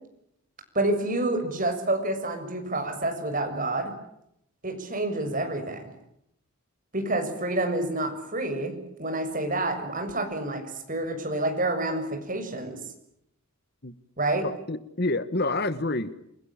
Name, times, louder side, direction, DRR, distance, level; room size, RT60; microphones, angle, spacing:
voice 1, 0.7-3.9 4.6-5.8 6.9-10.6 10.9-12.8 14.2-14.5, right 2 dB, 40° right, 5 dB, 6.8 m, -28 dB
voice 2, 14.7-16.4, left 2 dB, 45° left, 14 dB, 1.3 m, -28 dB
29.0 x 21.5 x 8.9 m, 0.78 s
head